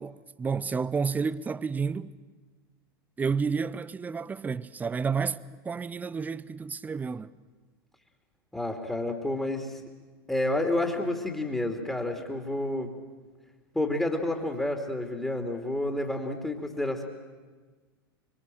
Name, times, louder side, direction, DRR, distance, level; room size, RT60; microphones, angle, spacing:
voice 1, 0.0-2.1 3.2-7.3, right 5 dB, 15° right, 0.7 m, -30 dB
voice 2, 8.5-9.8 10.3-12.9 13.7-17.0, left 1 dB, 5° left, 2.6 m, -29 dB
25.5 x 24.5 x 7.8 m
figure-of-eight pair, 90°, 12 cm